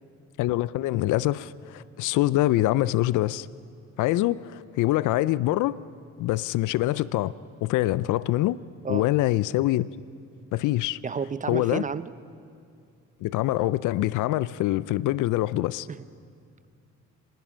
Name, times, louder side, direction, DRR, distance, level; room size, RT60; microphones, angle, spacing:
voice 1, 0.4-3.5 4.0-5.8 6.2-7.3 7.6-8.6 8.9-9.9 10.5-11.0 11.5-11.9 13.2-15.9, left 16 dB, 85° left, 19 dB, 0.5 m, -24 dB
voice 2, 11.0-12.1 15.9-16.0, right 6 dB, 25° right, 15 dB, 0.7 m, -31 dB
25.5 x 19.5 x 6.3 m, 2.3 s
cardioid pair, 90°, 30 cm